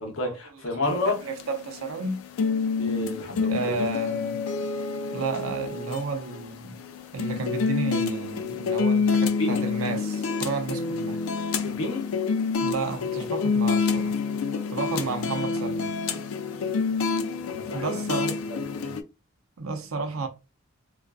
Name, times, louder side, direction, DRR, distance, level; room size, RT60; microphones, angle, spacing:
voice 1, 0.0-1.2 2.8-3.5 9.4-9.7 11.6-12.1 17.5-18.2 18.7-18.9, left 2 dB, 70° left, 0.8 m, -30 dB
sound 1, 0.9-19.0, left 5 dB, 90° left, 0.3 m, -28 dB
voice 2, 1.2-2.3 3.3-4.4 5.1-6.8 7.1-11.2 12.6-14.2 14.7-15.9 17.7-18.5 19.6-20.3, right 4 dB, 80° right, 0.6 m, -32 dB
2.4 x 2.3 x 2.3 m
head